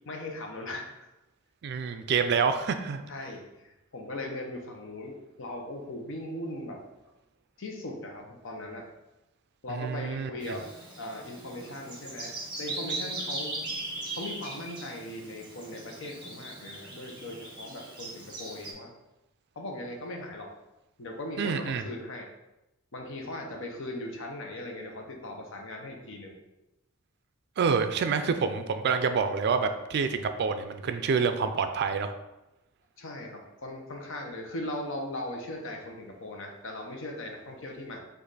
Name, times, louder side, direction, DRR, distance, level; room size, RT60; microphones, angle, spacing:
voice 1, 0.1-0.9 3.1-6.8 7.6-8.9 9.6-10.6 11.0-13.5 14.1-18.9 19.6-20.5 21.0-22.3 22.9-26.4 28.3-28.5 33.0-38.0, left 1 dB, 65° left, 2 dB, 0.8 m, -39 dB
voice 2, 1.6-3.1 9.7-10.3 21.4-21.8 27.6-32.1, right 5 dB, 55° right, 9 dB, 0.3 m, -27 dB
Bird vocalization bird call bird song, 10.4-18.7, right 2 dB, 20° right, 1.3 m, -39 dB
5.2 x 2.5 x 4.0 m, 0.96 s
head